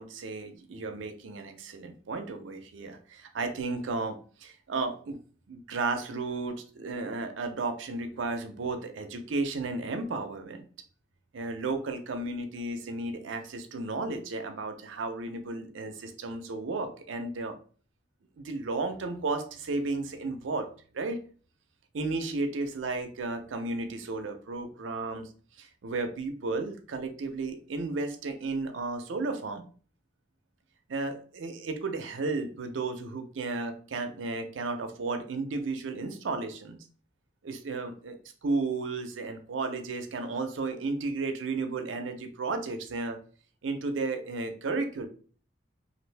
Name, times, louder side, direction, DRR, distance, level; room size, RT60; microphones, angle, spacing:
voice 1, 0.0-5.2 5.5-10.7 11.3-17.5 18.4-20.7 20.9-21.2 21.9-25.3 25.6-29.6 30.9-36.8 37.4-43.2 43.6-45.1, right 3 dB, 90° right, 7 dB, 0.5 m, -33 dB
2.6 x 2.5 x 3.2 m, 0.43 s
head